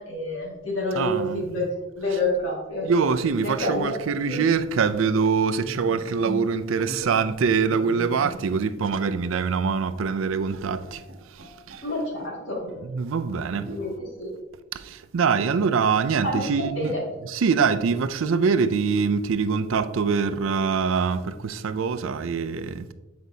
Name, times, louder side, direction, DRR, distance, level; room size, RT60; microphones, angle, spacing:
voice 1, 0.0-1.6 2.0-2.8 3.4-3.9 4.3-4.4 11.8-12.7 13.5-14.3 16.2-17.0, left 1 dB, 75° left, 2.1 m, -28 dB
voice 2, 1.0-1.4 2.8-11.0 11.3-11.8 12.8-13.7 14.7-16.9 17.2-22.9, right 5 dB, 80° right, 0.4 m, -24 dB
Bowed string instrument, 5.6-8.7 9.0-9.2 9.7-9.8 10.0-11.9 12.2-13.0 13.7-14.3, equal, 60° right, 1.1 m, -41 dB
7.8 x 5.1 x 2.7 m
head